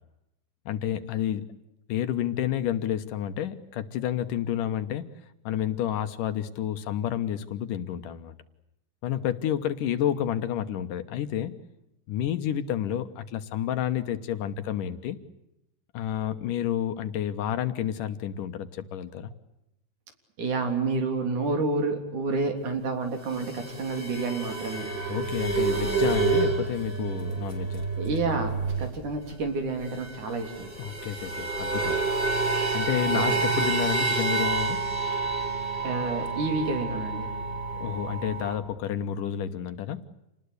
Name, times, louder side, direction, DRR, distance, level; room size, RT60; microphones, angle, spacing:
voice 1, 0.7-1.5 1.9-5.1 5.4-8.4 9.0-11.6 12.1-15.2 15.9-19.3 25.1-27.9 30.8-32.0 32.7-34.9 37.8-40.1, left 10 dB, 70° left, 10 dB, 2.6 m, -30 dB
voice 2, 20.4-24.9 28.0-30.7 33.1-33.4 35.8-37.3, right 3 dB, 60° right, 5 dB, 5.0 m, -29 dB
sound 1, 23.3-29.1 29.3-29.4 29.6-38.6, right 4 dB, 15° right, 4.7 m, -29 dB
28.5 x 20.0 x 8.2 m, 0.90 s
omnidirectional pair, 4.0 m